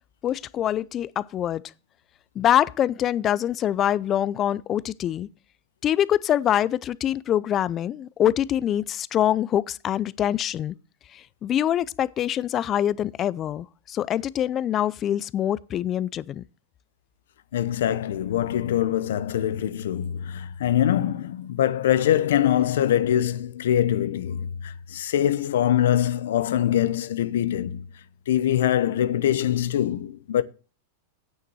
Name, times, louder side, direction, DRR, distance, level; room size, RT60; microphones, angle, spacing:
voice 1, 0.2-1.6 2.4-5.3 5.8-10.7 11.1-16.4, left 11 dB, 30° left, 0.4 m, -24 dB
voice 2, 17.5-27.8 28.3-30.4, left 11 dB, 80° left, 0.8 m, -23 dB
9.0 x 6.7 x 6.1 m
hypercardioid pair, 130°, 0 cm